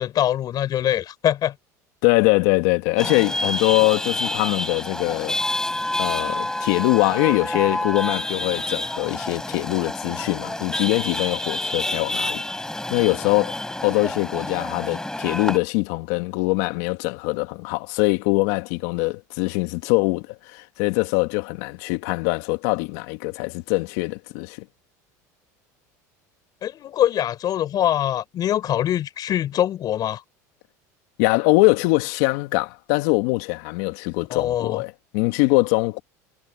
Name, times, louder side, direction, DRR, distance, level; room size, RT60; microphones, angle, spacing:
voice 1, 0.0-1.5 26.6-30.2 34.3-34.8, left 11 dB, 45° left, 7.1 m, -23 dB
voice 2, 2.0-5.4 6.0-12.4 12.9-24.6 31.2-36.0, left 25 dB, 70° left, 2.0 m, -22 dB
Chatter / Vehicle horn car horn honking / Traffic noise roadway noise, 3.0-15.6, left 1 dB, 5° left, 6.0 m, -28 dB
hypercardioid pair, 90°, 9 cm